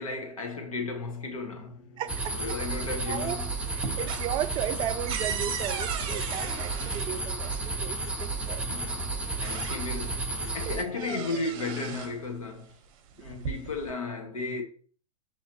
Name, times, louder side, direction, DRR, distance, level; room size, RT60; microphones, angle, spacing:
voice 1, 0.0-1.8 2.3-3.5 8.6-12.7 13.1-14.6, left 3 dB, 85° left, 1.2 m, -34 dB
sound 1, 1.3-12.4, left 1 dB, 65° left, 0.8 m, -53 dB
voice 2, 2.0-2.6 3.1-8.8 10.7-10.8, right 12 dB, 30° right, 0.3 m, -35 dB
sound 2, 2.1-10.8, right 3 dB, 5° right, 0.8 m, -32 dB
sound 3, 2.7-3.3 3.6-7.6 8.7-8.8 9.2-10.2 10.5-12.2 13.1-13.9, right 7 dB, 50° right, 0.8 m, -37 dB
6.2 x 3.0 x 2.8 m
hypercardioid pair, 100°, 17 cm